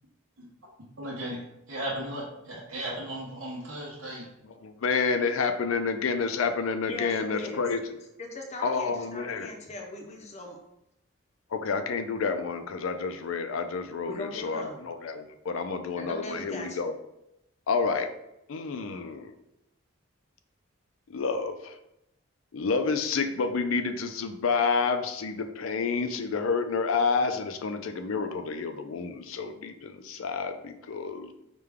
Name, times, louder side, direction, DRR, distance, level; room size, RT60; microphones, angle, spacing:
voice 1, 1.0-1.4 1.7-4.3, right 1 dB, 85° right, -5 dB, 0.9 m, -36 dB
voice 2, 4.4-7.8 8.6-9.5 11.5-16.9 17.7-18.1 18.5-19.3 21.1-21.8 22.5-31.3, left 5 dB, 80° left, 8 dB, 0.4 m, -29 dB
voice 3, 6.9-7.6 8.2-10.6 14.1-14.9 16.0-16.8, left 1 dB, 35° left, 2 dB, 0.6 m, -39 dB
4.9 x 2.2 x 3.5 m, 0.85 s
head